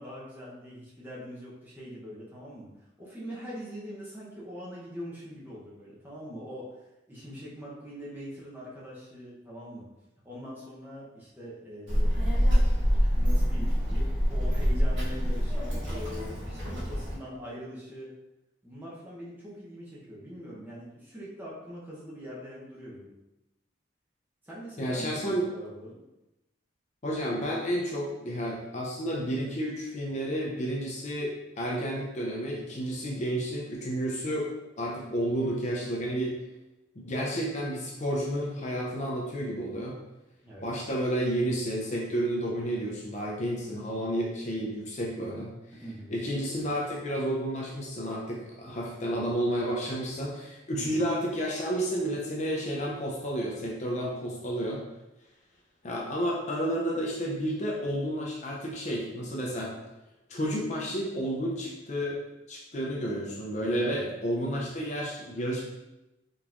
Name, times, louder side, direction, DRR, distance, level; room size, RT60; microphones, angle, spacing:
voice 1, 0.0-2.7 3.0-9.9 10.2-12.1 12.5-12.7 13.1-14.0 14.3-18.1 18.6-23.1 24.4-26.0 40.4-40.8 45.8-46.1 50.7-51.0 63.7-64.1, equal, 10° right, -7 dB, 0.8 m, -42 dB
Child speech kid speaking, 11.9-17.1, equal, 80° right, 1.3 m, -25 dB
voice 2, 24.8-25.4 27.0-34.5 34.8-36.4 37.0-40.0 40.6-45.5 46.1-54.8 55.8-59.7 60.3-62.2 62.5-65.6, equal, 35° left, -2 dB, 0.5 m, -31 dB
3.7 x 2.9 x 2.5 m, 0.98 s
head